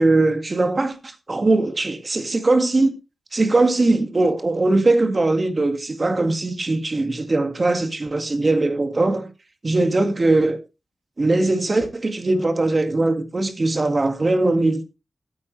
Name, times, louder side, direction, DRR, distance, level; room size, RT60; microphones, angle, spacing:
voice 1, 0.0-2.9 3.3-9.3 9.6-10.6 11.2-14.8, right 2 dB, 35° right, 1.9 m, -20 dB
14.5 x 8.5 x 3.2 m
wide cardioid pair, 95°, 0 cm